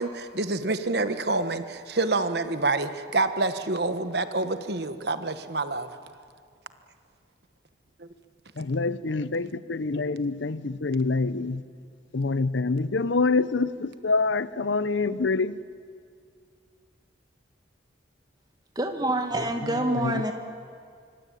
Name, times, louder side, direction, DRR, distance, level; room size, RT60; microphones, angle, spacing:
voice 1, 0.0-5.9 8.0-8.1, right 3 dB, 60° right, 1.3 m, -27 dB
voice 2, 8.6-11.6 12.1-15.6 19.6-20.2, left 3 dB, 75° left, 0.7 m, -26 dB
voice 3, 18.8-20.3, right 1 dB, 20° right, 1.9 m, -26 dB
24.5 x 24.5 x 9.2 m
head